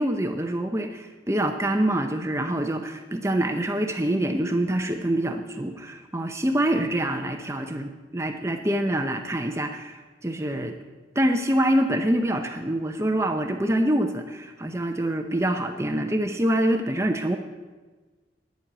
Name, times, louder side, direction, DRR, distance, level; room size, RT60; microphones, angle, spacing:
voice 1, 0.0-10.7 11.2-17.4, right 1 dB, 15° right, 5 dB, 0.7 m, -25 dB
10.5 x 7.7 x 9.8 m, 1.3 s
head